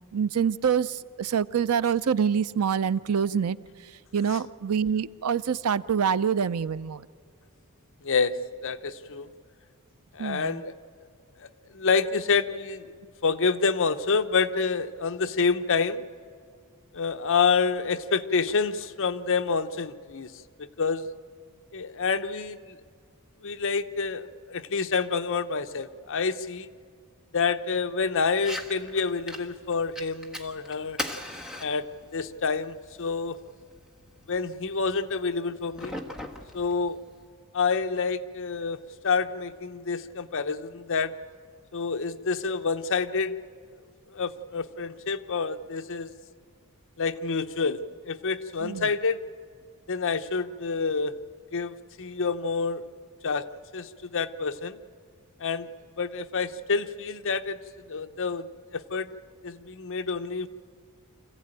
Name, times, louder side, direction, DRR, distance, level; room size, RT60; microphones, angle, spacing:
voice 1, 0.1-0.9 1.2-3.6 4.1-7.0 10.2-10.4 48.6-48.8, right 7 dB, 85° right, 16 dB, 0.5 m, -25 dB
voice 2, 8.0-9.3 10.1-10.7 11.4-11.5 11.7-12.9 13.2-16.1 16.9-20.3 20.6-21.1 21.7-22.6 23.4-26.7 27.3-31.0 31.6-31.8 32.1-33.4 34.3-35.9 36.5-37.0 37.5-41.1 41.7-43.4 44.1-46.1 47.0-49.2 49.9-51.1 51.5-52.8 53.2-53.4 53.7-54.8 55.4-55.7 56.0-57.6 57.9-58.5 58.7-59.1 59.4-60.5, left 5 dB, 60° left, 9 dB, 0.8 m, -28 dB
Fire, 28.3-37.3, left 1 dB, 5° right, 1.4 m, -41 dB
25.5 x 15.5 x 8.9 m, 2.1 s
head